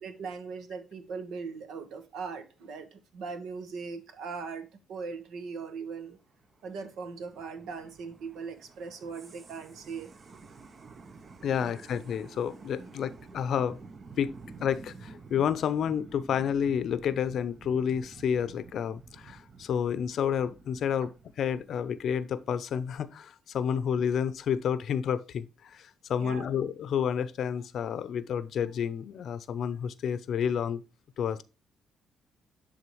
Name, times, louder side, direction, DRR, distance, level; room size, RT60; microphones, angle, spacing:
voice 1, 0.0-6.2 6.6-10.1 11.6-11.7 12.8-12.9 26.2-26.5, right 5 dB, 80° right, 1.4 m, -40 dB
sound 1, 6.0-22.5, right 4 dB, 40° right, 0.7 m, -51 dB
voice 2, 11.4-13.8 14.2-14.3 14.6-21.1 21.4-30.8 31.2-31.4, left 8 dB, 65° left, 0.6 m, -30 dB
11.0 x 3.8 x 3.1 m
cardioid pair, 90°, 0 cm